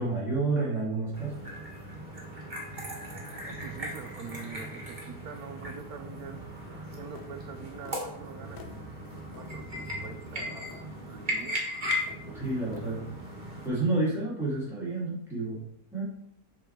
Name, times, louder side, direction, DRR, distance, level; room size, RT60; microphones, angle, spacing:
voice 1, 0.0-1.4 12.3-13.0 13.6-15.6 15.9-16.0, right 2 dB, ahead, -7 dB, 2.5 m, -29 dB
sound 1, 1.1-13.7, left 1 dB, 30° right, 1.6 m, -37 dB
voice 2, 3.4-8.9 9.3-11.7, right 6 dB, 70° right, 8 dB, 1.1 m, -45 dB
sound 2, 7.2-7.3 7.8-8.0 8.6-8.8 9.3-9.5 10.0-10.2 10.7-10.8 11.4-11.5 12.1-12.3 12.7-12.9, left 6 dB, 75° left, 1.4 m, -49 dB
6.8 x 6.1 x 4.6 m, 0.72 s
omnidirectional pair, 1.8 m